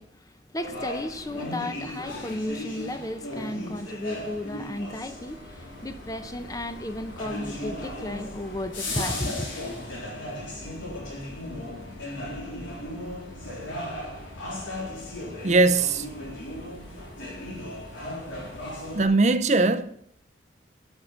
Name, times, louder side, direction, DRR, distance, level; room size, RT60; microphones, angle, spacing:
voice 1, 0.0-9.5, left 1 dB, 20° left, 0.6 m, -34 dB
sound 1, 0.6-19.0, left 1 dB, 90° left, 3.6 m, -36 dB
voice 2, 15.4-16.1 18.9-19.9, right 3 dB, 35° right, 0.6 m, -20 dB
12.5 x 6.4 x 7.3 m
head